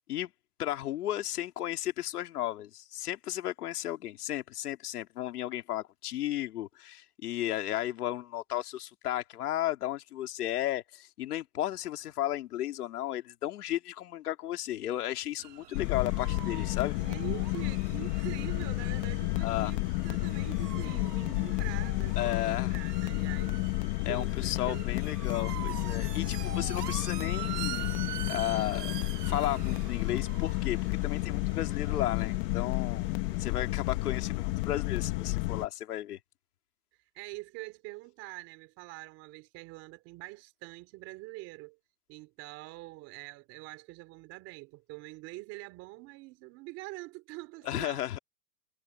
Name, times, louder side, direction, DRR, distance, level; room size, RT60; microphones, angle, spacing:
voice 1, 0.6-17.0 19.4-19.7 22.2-22.7 24.0-27.9 28.3-28.9 29.2-33.1 33.4-36.2 47.6-48.2, left 13 dB, 70° left, 2.8 m, -34 dB
sound 1, 15.4-34.9, right 12 dB, 80° right, 2.9 m, -45 dB
sound 2, 15.7-35.7, left 21 dB, 35° left, 1.4 m, -31 dB
voice 2, 16.9-25.7 37.1-41.8 42.1-48.1, right 22 dB, 30° right, 3.3 m, -45 dB
supercardioid pair, 160°, 47 cm